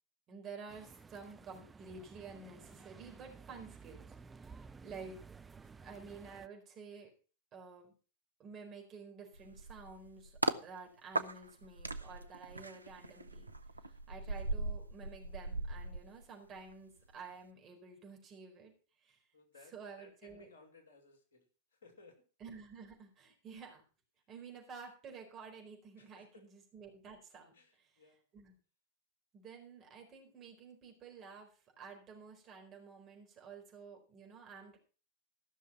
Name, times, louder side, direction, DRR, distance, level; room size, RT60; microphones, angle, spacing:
voice 1, 0.3-5.2 5.8-7.1 7.5-7.9 8.4-13.5 13.9-18.7 19.0-19.2 19.7-20.5 22.4-23.8 24.3-26.3 26.5-27.6 28.3-28.5 29.3-34.8, right 5 dB, 30° right, 1 dB, 4.4 m, -51 dB
sound 1, 0.7-6.5, right 5 dB, 15° right, 0.5 m, -55 dB
sound 2, 9.3-10.6 11.1-16.7 17.0-17.3, right 2 dB, 80° right, 0.6 m, -39 dB
voice 2, 19.3-22.2 26.0-26.5 27.5-28.3, left 3 dB, 65° left, 4 dB, 2.7 m, -61 dB
15.0 x 6.4 x 5.9 m, 0.36 s
figure-of-eight pair, 90°, 0 cm